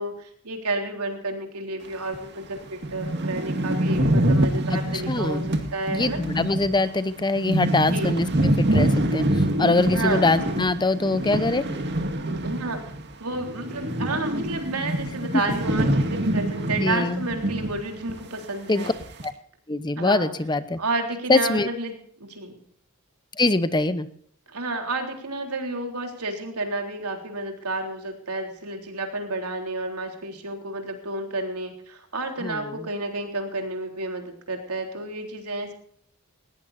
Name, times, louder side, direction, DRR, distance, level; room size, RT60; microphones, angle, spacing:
voice 1, 0.0-5.4 5.7-6.2 7.9-8.2 9.9-10.4 12.4-12.8 13.2-18.9 20.0-20.3 20.8-22.6 24.5-35.7, right 2 dB, 90° right, 3 dB, 3.7 m, -31 dB
sound 1, 2.1-2.2 2.6-2.7 2.8-13.1 13.3-17.8 18.1-18.2 18.8-19.3, right 1 dB, 50° right, 2.1 m, -25 dB
voice 2, 5.1-5.4 5.9-11.6 16.8-17.3 18.7-18.9 19.2-19.3 19.7-20.8 21.3-21.7 23.4-24.1 32.4-32.9, left 2 dB, 20° left, 13 dB, 0.8 m, -23 dB
19.5 x 18.0 x 2.7 m, 0.63 s
head